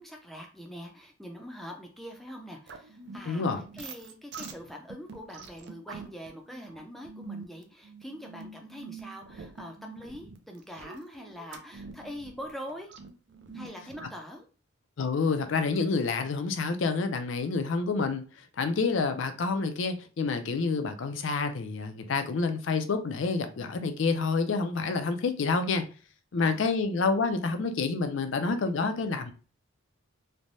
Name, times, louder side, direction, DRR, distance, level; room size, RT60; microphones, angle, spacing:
voice 1, 0.0-12.9 13.5-14.5 26.4-26.8, equal, ahead, 0.4 m, -43 dB
sound 1, 2.7-14.1, right 4 dB, 55° right, 0.4 m, -45 dB
voice 2, 3.3-3.6 15.0-18.2 18.6-25.8 26.3-29.3, left 4 dB, 65° left, 0.4 m, -28 dB
3.2 x 2.1 x 2.6 m
head